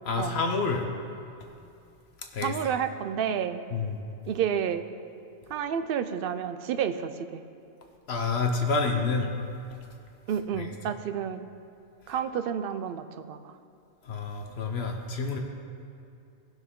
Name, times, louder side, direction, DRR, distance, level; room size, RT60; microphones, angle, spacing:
voice 1, 0.0-0.8 2.3-2.5 3.7-4.0 8.1-9.3 10.5-10.7 14.1-15.4, left 4 dB, 70° left, 3 dB, 1.1 m, -28 dB
voice 2, 2.4-3.6 4.3-4.9 5.5-7.4 10.3-11.5 12.1-13.5, right 8 dB, 65° right, 10 dB, 0.7 m, -30 dB
17.5 x 6.2 x 3.7 m, 2.6 s
omnidirectional pair, 1.1 m